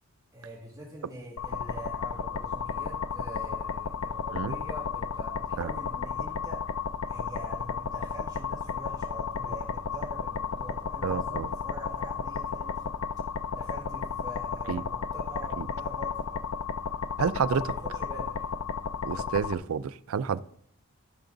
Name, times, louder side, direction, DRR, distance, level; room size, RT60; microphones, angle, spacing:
voice 1, 0.3-6.6 7.1-12.9 13.5-16.4 17.4-18.5 19.1-19.3, right 1 dB, 15° right, 2.2 m, -44 dB
sound 1, 1.4-19.5, left 6 dB, 70° left, 0.5 m, -33 dB
voice 2, 11.0-11.5 14.7-14.8 15.6-15.7 17.2-17.6 19.0-20.4, right 6 dB, 75° right, 0.4 m, -29 dB
14.0 x 6.0 x 3.9 m
head